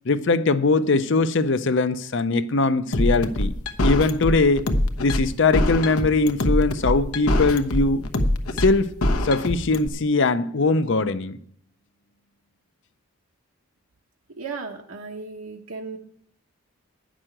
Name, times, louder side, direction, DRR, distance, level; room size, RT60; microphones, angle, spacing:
voice 1, 0.1-3.5 3.8-4.7 5.0-8.1 8.6-9.0 9.2-11.4, left 3 dB, 55° left, 0.6 m, -21 dB
sound 1, 2.9-9.9, left 1 dB, 85° left, 1.0 m, -23 dB
voice 2, 14.4-16.0, right 4 dB, 70° right, 1.1 m, -35 dB
10.0 x 6.3 x 8.9 m
head